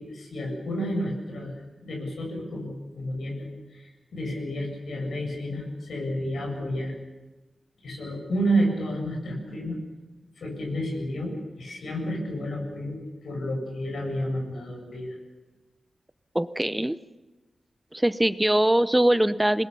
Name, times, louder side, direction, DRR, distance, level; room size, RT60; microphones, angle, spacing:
voice 1, 0.0-1.5 1.8-6.9 7.8-9.8 10.4-15.2, equal, 85° left, 1 dB, 7.7 m, -30 dB
voice 2, 16.3-17.0 17.9-19.7, right 1 dB, 10° right, 14 dB, 0.7 m, -22 dB
27.5 x 21.0 x 7.0 m, 1.1 s
wide cardioid pair, 115°, 0 cm